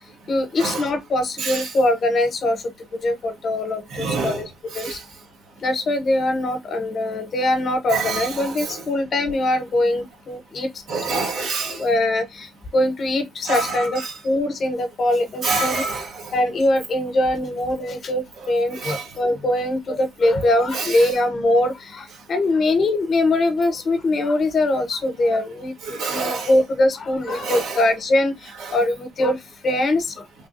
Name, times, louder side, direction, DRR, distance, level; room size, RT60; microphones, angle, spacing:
voice 1, 0.3-2.6 3.0-4.5 4.7-5.0 5.6-10.7 11.8-12.5 12.7-15.8 16.3-28.3 28.7-29.4 29.6-30.1, left 1 dB, 50° left, 0.9 m, -22 dB
voice 2, 1.4-1.7 3.9-4.4 4.7-5.0 7.9-8.8 10.9-11.8 13.4-14.1 15.4-16.3 18.7-19.1 20.7-21.1 25.8-26.5 27.3-27.8 28.6-28.8, right 4 dB, 80° right, 1.1 m, -27 dB
3.2 x 2.3 x 2.6 m
cardioid pair, 90°, 0 cm